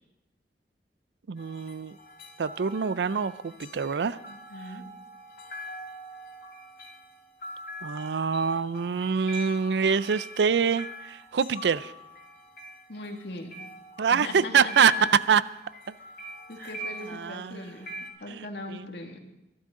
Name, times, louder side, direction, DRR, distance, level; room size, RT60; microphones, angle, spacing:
voice 1, 1.3-2.0 2.4-4.2 4.7-4.8 7.8-11.9 14.0-14.9 15.3-15.4 17.1-17.7 18.3-18.8, right 6 dB, 85° right, 17 dB, 0.5 m, -25 dB
sound 1, 1.4-18.1, left 1 dB, 60° left, 2.6 m, -42 dB
voice 2, 4.3-4.8 12.9-13.5 14.1-15.1 16.5-17.9 18.2-19.2, left 2 dB, 80° left, 2 dB, 2.1 m, -39 dB
22.5 x 12.0 x 3.8 m, 0.92 s
head